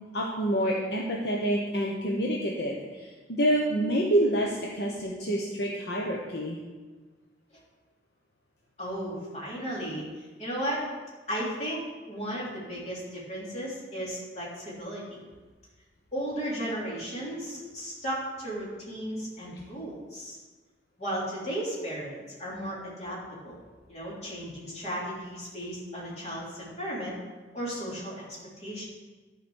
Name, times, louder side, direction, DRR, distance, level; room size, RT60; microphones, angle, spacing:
voice 1, 0.1-6.6, right 1 dB, 65° left, -2 dB, 1.0 m, -27 dB
voice 2, 8.8-10.8 11.3-11.8 12.1-15.0 16.1-20.4 21.0-23.2 23.4-23.6 23.9-27.1 27.5-28.2 28.6-28.8, equal, 35° left, -6 dB, 3.4 m, -35 dB
11.5 x 5.1 x 6.4 m, 1.3 s
head